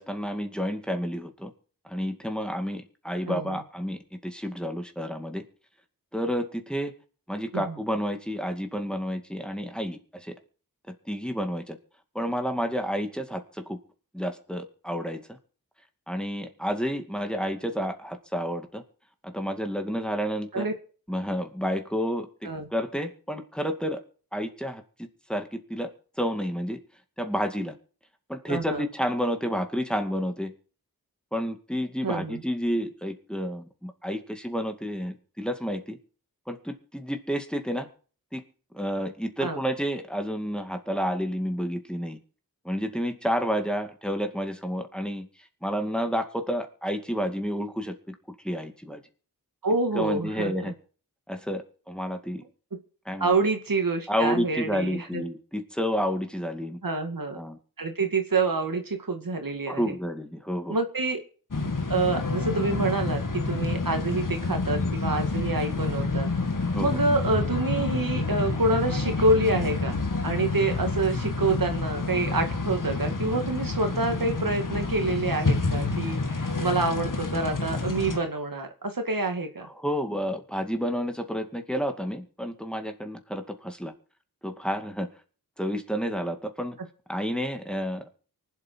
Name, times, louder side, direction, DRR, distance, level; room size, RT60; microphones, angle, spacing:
voice 1, 0.0-1.5 1.8-5.4 6.1-6.9 7.3-10.3 10.9-11.8 12.1-13.8 14.1-15.4 16.1-18.8 19.2-20.7 21.1-22.3 22.7-24.0 24.3-25.9 26.2-26.8 27.2-27.8 28.3-30.5 31.3-36.0 36.5-37.9 38.3-38.4 38.7-42.2 42.6-45.3 45.6-48.2 48.4-49.0 49.9-50.7 51.3-52.4 53.1-53.4 54.1-56.8 57.3-57.6 59.7-60.8 66.7-67.0 79.6-83.9 84.4-85.1 85.6-86.8 87.1-88.1, equal, ahead, 5 dB, 2.3 m, -30 dB
voice 2, 3.3-3.6 7.5-7.8 20.5-20.7 22.4-22.7 28.5-28.9 32.0-32.4 39.4-39.6 49.6-50.7 53.2-55.2 56.8-57.4 57.8-59.8 60.7-61.2 61.9-66.3 66.8-70.0 70.2-79.7, right 2 dB, 65° right, 5 dB, 2.2 m, -27 dB
sound 1, 61.5-78.2, left 3 dB, 55° left, 1.8 m, -28 dB
24.5 x 8.2 x 4.6 m, 0.41 s
wide cardioid pair, 50°, 37 cm